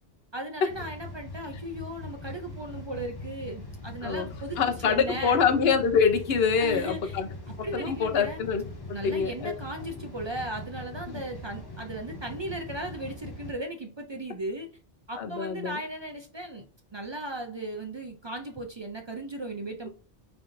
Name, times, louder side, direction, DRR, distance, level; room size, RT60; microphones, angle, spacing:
voice 1, 0.3-4.6 4.8-5.4 6.6-7.2 7.6-8.4 8.9-14.7 15.1-16.6 16.9-19.9, right 1 dB, 40° right, 4 dB, 0.4 m, -36 dB
sound 1, 0.7-13.5, left 2 dB, 25° left, 0.8 m, -42 dB
voice 2, 4.6-7.3 7.6-8.6 8.9-9.5 11.1-11.2 15.2-15.8, left 6 dB, 70° left, 6 dB, 0.9 m, -25 dB
3.9 x 3.3 x 2.5 m, 0.36 s
omnidirectional pair, 1.1 m